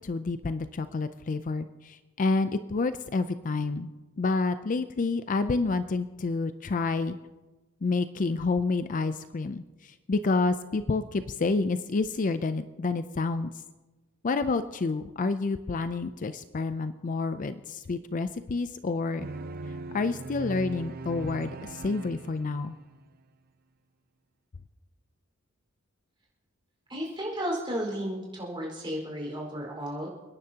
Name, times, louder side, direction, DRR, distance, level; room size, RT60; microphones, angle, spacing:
voice 1, 0.0-3.9 4.2-7.2 7.8-13.5 14.2-19.3 19.9-22.8, left 3 dB, 40° left, 11 dB, 0.4 m, -29 dB
sound 1, 19.2-23.0, right 2 dB, 45° right, 0.6 m, -39 dB
voice 2, 26.9-30.1, equal, 25° right, -2 dB, 4.7 m, -33 dB
29.5 x 10.5 x 2.9 m, 1.2 s
head